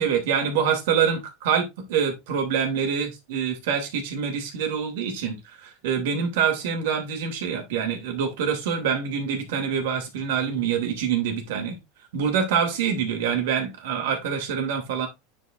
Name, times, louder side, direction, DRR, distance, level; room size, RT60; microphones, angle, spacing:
voice 1, 0.0-11.8 12.1-15.1, right 7 dB, 75° right, 2.9 m, -25 dB
9.8 x 4.8 x 2.6 m
supercardioid pair, 140°, 0 cm